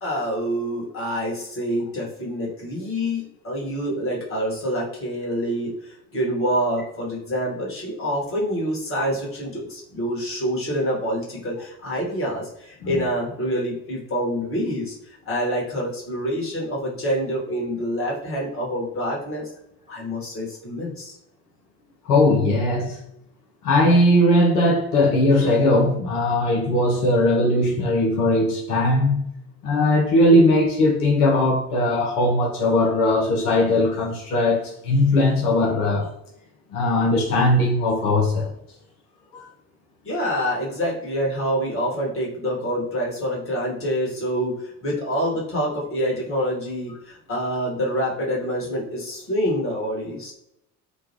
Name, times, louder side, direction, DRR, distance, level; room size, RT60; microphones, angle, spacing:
voice 1, 0.0-14.9 15.2-19.5 19.9-21.1 40.0-50.3, equal, 25° left, -4 dB, 1.4 m, -26 dB
voice 2, 22.0-23.0 23.6-29.2 29.6-36.1 36.7-38.5 39.3-39.4, left 1 dB, 70° left, -1 dB, 0.8 m, -19 dB
3.0 x 2.2 x 2.9 m, 0.78 s
figure-of-eight pair, 55°, 47 cm